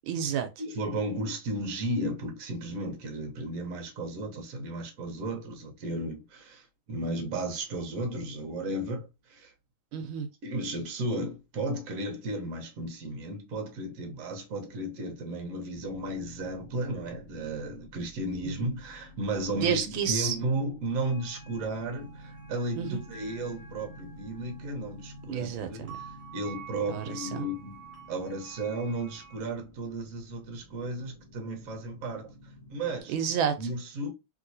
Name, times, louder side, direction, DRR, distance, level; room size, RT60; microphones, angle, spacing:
voice 1, 0.1-0.5 9.9-10.3 18.4-18.5 19.5-20.4 22.8-23.0 25.3-25.9 26.9-27.4 33.1-33.5, right 8 dB, 80° right, 1.4 m, -30 dB
voice 2, 0.6-9.5 10.4-27.8 28.1-32.3 32.7-33.1 33.6-34.1, right 1 dB, 55° right, 1.1 m, -34 dB
sound 1, 15.7-33.0, equal, 25° left, 1.1 m, -50 dB
sound 2, 20.9-29.4, right 6 dB, 15° right, 0.6 m, -50 dB
3.3 x 2.9 x 2.6 m
omnidirectional pair, 2.2 m